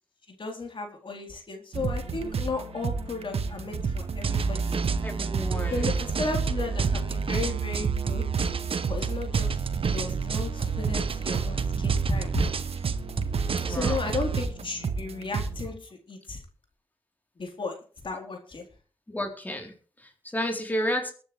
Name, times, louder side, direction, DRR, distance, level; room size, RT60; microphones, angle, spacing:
voice 1, 0.4-4.8 5.7-8.3 8.9-12.4 13.7-16.4 17.4-17.7 18.0-18.6, left 3 dB, 55° left, 2 dB, 3.9 m, -34 dB
sound 1, 1.7-15.7, right 5 dB, 80° right, 1.6 m, -32 dB
sound 2, 4.2-14.4, right 5 dB, 65° right, 1.2 m, -30 dB
voice 2, 5.0-5.9 13.6-14.0 19.1-21.1, equal, 15° left, 2 dB, 3.7 m, -32 dB
22.0 x 9.3 x 3.3 m, 0.40 s
wide cardioid pair, 85°, 10 cm